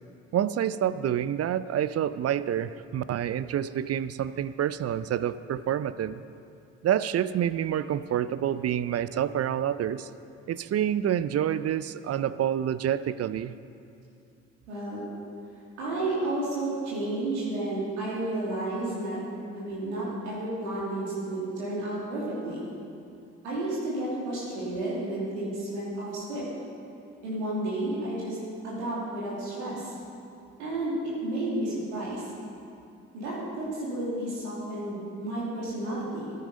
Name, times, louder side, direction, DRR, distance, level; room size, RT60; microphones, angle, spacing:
voice 1, 0.3-6.2 6.8-10.1 10.5-13.5, right 10 dB, 45° right, 15 dB, 0.5 m, -28 dB
voice 2, 14.7-15.0 15.8-19.2 19.5-22.7 23.4-26.4 27.2-28.4 28.6-29.9 30.6-32.2 33.1-36.3, right 1 dB, 85° right, -8 dB, 2.6 m, -31 dB
14.0 x 9.6 x 5.3 m, 2.6 s
hypercardioid pair, 40°, 34 cm